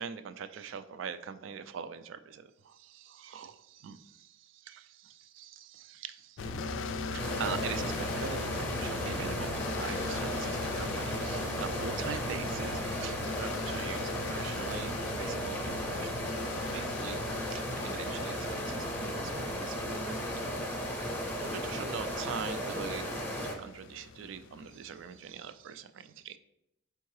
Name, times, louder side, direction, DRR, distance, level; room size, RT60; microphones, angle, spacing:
voice 1, 0.0-6.5 7.0-16.1 16.4-20.3 21.4-26.4, right 7 dB, 70° right, 11 dB, 0.3 m, -42 dB
sound 1, 6.4-25.0, left 3 dB, 65° left, 0.3 m, -40 dB
sound 2, 7.2-23.5, equal, 10° left, 0.6 m, -36 dB
4.5 x 3.5 x 3.1 m, 0.85 s
head